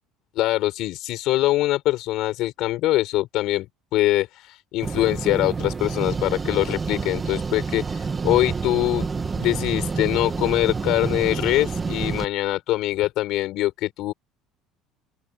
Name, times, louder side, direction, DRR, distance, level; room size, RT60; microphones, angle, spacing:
voice 1, 0.4-3.7 3.9-9.1 9.4-14.1, left 16 dB, 55° left, 5.9 m, -23 dB
sound 1, 4.8-12.3, right 5 dB, 20° right, 2.1 m, -28 dB
open air
cardioid pair, 165°, 0 cm